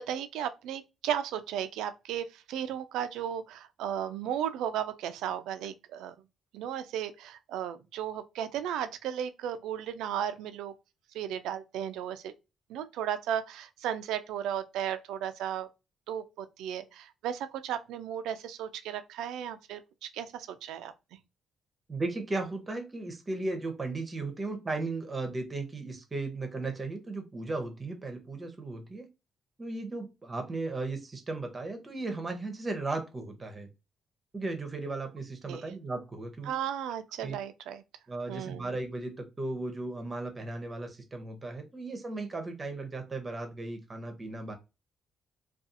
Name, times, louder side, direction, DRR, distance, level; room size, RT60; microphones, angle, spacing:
voice 1, 0.0-6.1 6.5-10.7 11.1-12.3 12.7-15.7 16.1-20.9 35.5-35.6 36.5-37.8 38.3-38.7, right 9 dB, 90° right, 0.3 m, -35 dB
voice 2, 21.9-29.1 29.6-33.7 34.3-36.5 37.2-37.4 38.1-44.5, right 2 dB, 30° right, 0.7 m, -36 dB
2.5 x 2.3 x 2.6 m
cardioid pair, 90°, 0 cm